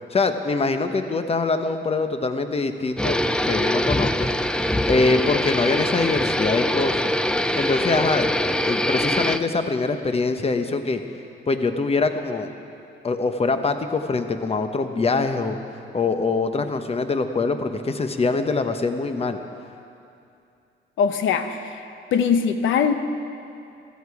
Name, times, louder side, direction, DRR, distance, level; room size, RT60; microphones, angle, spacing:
voice 1, 0.1-4.4 4.9-7.1 7.6-8.3 8.7-11.0 11.5-12.5 13.0-15.6 15.9-19.4, left 3 dB, 30° left, 8 dB, 1.0 m, -23 dB
sound 1, 3.0-9.4, left 1 dB, 5° left, 0.5 m, -23 dB
voice 2, 21.0-21.8 22.1-22.9, left 6 dB, 75° left, 8 dB, 1.0 m, -21 dB
16.5 x 13.5 x 4.9 m, 2.6 s
cardioid pair, 90°, 20 cm